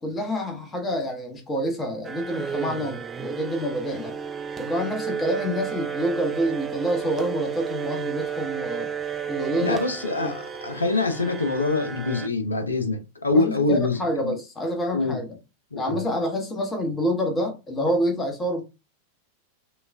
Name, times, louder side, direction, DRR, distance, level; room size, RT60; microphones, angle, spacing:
voice 1, 0.0-4.1 4.6-8.9 9.3-9.8 10.2-10.3 13.3-15.3 15.8-18.6, equal, 20° left, 1.1 m, -27 dB
sound 1, 2.0-12.3, right 7 dB, 20° right, 0.3 m, -32 dB
voice 2, 9.6-14.4 14.9-15.2 15.7-16.0, left 3 dB, 75° left, 0.7 m, -25 dB
5.3 x 2.4 x 2.2 m
figure-of-eight pair, 90°, 0 cm